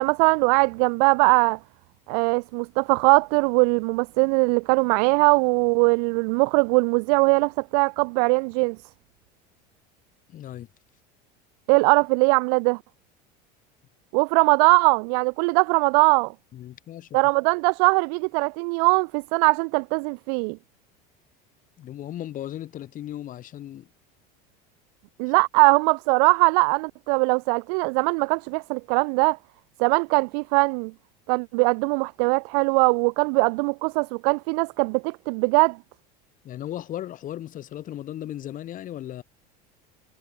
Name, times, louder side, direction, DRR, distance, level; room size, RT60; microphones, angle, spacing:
voice 1, 0.0-1.6 2.1-8.8 11.7-12.8 14.1-16.3 17.1-20.6 25.2-29.4 29.8-30.9 31.3-35.8, right 35 dB, 70° right, 0.7 m, -21 dB
voice 2, 10.3-10.7 16.5-17.2 21.8-23.9 36.4-39.2, left 12 dB, 40° left, 1.6 m, -36 dB
supercardioid pair, 115°, 20 cm